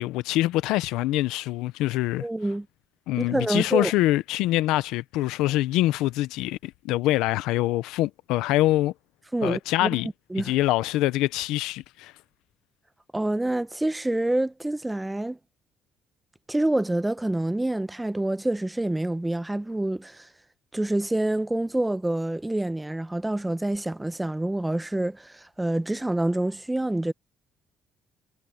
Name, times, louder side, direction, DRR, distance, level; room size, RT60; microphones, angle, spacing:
voice 1, 0.0-2.3 3.1-8.9 9.4-10.1 10.4-12.1, left 16 dB, 90° left, 0.7 m, -24 dB
voice 2, 2.2-2.7 3.2-3.9 9.3-10.0 10.3-10.5 13.1-15.4 16.5-20.3 20.7-27.1, right 1 dB, 10° right, 0.9 m, -27 dB
cardioid pair, 90°, 0 cm